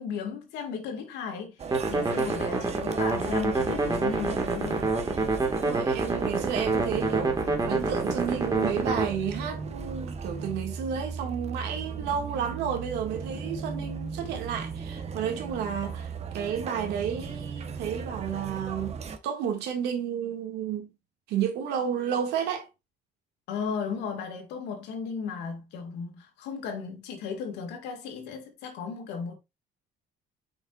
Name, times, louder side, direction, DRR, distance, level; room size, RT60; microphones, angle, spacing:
voice 1, 0.0-1.6 1.9-4.9 23.5-29.4, left 6 dB, 85° left, 2.0 m, -35 dB
sound 1, 1.6-19.2, right 5 dB, 40° right, 1.1 m, -37 dB
sound 2, 1.7-9.1, right 3 dB, 20° right, 1.8 m, -27 dB
voice 2, 5.6-19.0 19.2-20.9 21.3-22.7, right 8 dB, 85° right, 2.1 m, -31 dB
7.8 x 5.5 x 2.5 m
cardioid pair, 110°, 17 cm